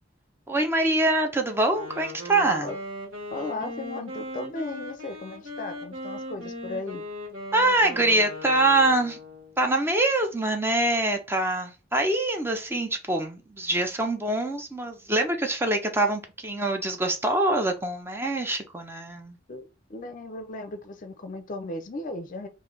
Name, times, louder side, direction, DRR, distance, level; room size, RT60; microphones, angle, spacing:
voice 1, 0.5-2.7 7.5-9.2 9.6-19.4, right 2 dB, 10° right, 0.5 m, -24 dB
Wind instrument woodwind instrument, 1.7-9.6, left 1 dB, 85° right, 1.2 m, -38 dB
voice 2, 3.3-7.0 19.5-22.5, left 2 dB, 45° left, 0.5 m, -36 dB
3.2 x 2.5 x 3.8 m
head